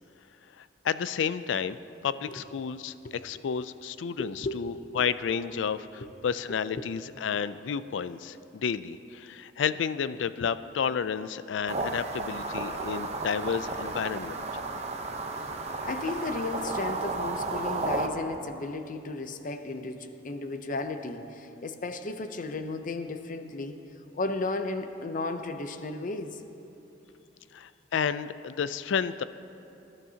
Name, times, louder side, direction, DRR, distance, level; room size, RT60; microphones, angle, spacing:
voice 1, 0.6-1.8 2.0-14.4 27.5-29.2, left 7 dB, 90° left, 14 dB, 0.4 m, -31 dB
voice 2, 4.2-4.6 4.9-5.0 6.0-6.1 6.8-6.9 15.8-23.8 24.1-26.4, left 3 dB, 45° left, 8 dB, 0.6 m, -34 dB
sound 1, 11.7-18.1, right 3 dB, 35° right, 0.8 m, -33 dB
20.5 x 12.0 x 2.8 m, 2.9 s
head